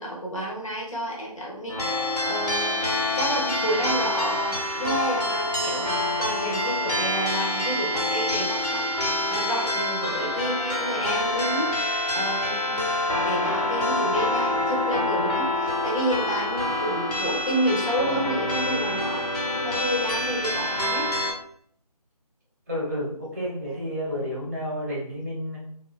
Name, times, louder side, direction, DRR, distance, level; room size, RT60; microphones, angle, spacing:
voice 1, 0.0-11.7 12.1-21.1 23.7-23.8, equal, 55° left, -3 dB, 1.0 m, -30 dB
sound 1, 1.7-21.3, left 1 dB, 75° left, 1.2 m, -26 dB
sound 2, 8.3-15.5, left 3 dB, 35° left, 0.6 m, -43 dB
voice 2, 22.7-25.6, equal, 25° right, -6 dB, 0.8 m, -30 dB
2.7 x 2.3 x 2.2 m, 0.63 s
figure-of-eight pair, 165°, 20 cm